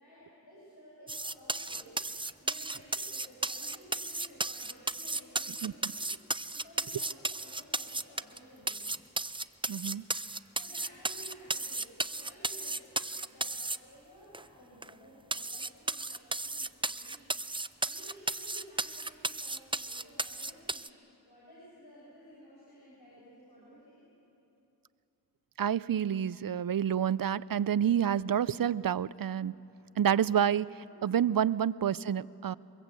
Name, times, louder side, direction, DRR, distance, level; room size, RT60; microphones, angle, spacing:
voice 1, 0.0-1.9 2.4-6.1 6.5-8.8 10.5-24.0 30.8-31.1, equal, 70° left, -7 dB, 6.6 m, -55 dB
sound 1, 1.1-8.4 8.7-13.8 14.3-14.4 14.8-14.9 15.3-20.9, right 2 dB, 15° right, 0.5 m, -34 dB
voice 2, 9.7-10.1 25.6-29.5 30.0-30.7 31.0-32.6, right 9 dB, 60° right, 20 dB, 0.5 m, -28 dB
24.0 x 22.0 x 8.2 m, 2.9 s
wide cardioid pair, 45°, 40 cm